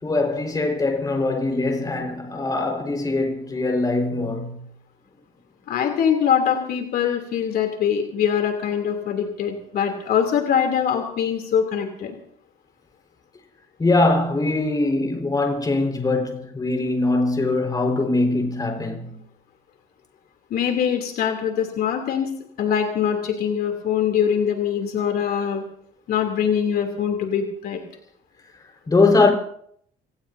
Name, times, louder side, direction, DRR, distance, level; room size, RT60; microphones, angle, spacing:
voice 1, 0.0-4.6 13.8-19.1 28.9-29.3, left 2 dB, 20° left, 4.9 m, -22 dB
voice 2, 5.7-12.2 20.5-22.3 22.6-25.6 26.1-27.8, left 8 dB, 65° left, 3.1 m, -23 dB
26.0 x 19.0 x 2.8 m
cardioid pair, 110°, 17 cm